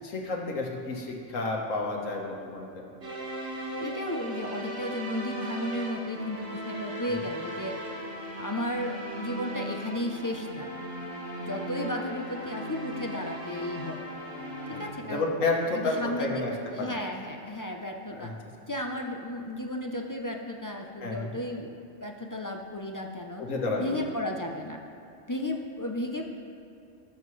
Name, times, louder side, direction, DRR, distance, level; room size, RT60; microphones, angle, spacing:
voice 1, 0.0-2.9 7.1-7.2 14.7-17.0 18.1-18.3 21.0-21.4 23.4-24.0, left 2 dB, 75° left, 0 dB, 1.7 m, -31 dB
sound 1, 3.0-14.9, right 1 dB, 45° right, 1.8 m, -38 dB
voice 2, 3.8-7.7 8.4-10.7 11.4-14.1 14.7-15.3 15.7-16.4 16.8-18.3 18.7-21.7 22.0-23.4 23.8-24.8 25.3-26.2, left 1 dB, 30° left, 2 dB, 0.4 m, -34 dB
18.5 x 7.2 x 3.2 m, 2.7 s
omnidirectional pair, 1.4 m